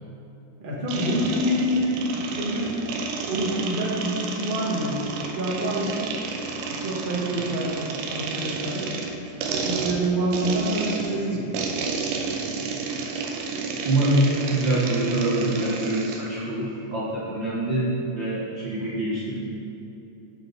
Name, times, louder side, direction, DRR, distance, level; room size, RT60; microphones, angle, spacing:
voice 1, 0.6-2.7 3.2-6.0 6.6-8.9 9.6-11.5, equal, 25° right, -6 dB, 1.3 m, -27 dB
sound 1, 0.9-16.3, right 4 dB, 90° right, 2.3 m, -31 dB
voice 2, 13.8-19.4, right 1 dB, 65° right, -7 dB, 1.1 m, -25 dB
9.3 x 6.9 x 4.0 m, 2.9 s
omnidirectional pair, 3.6 m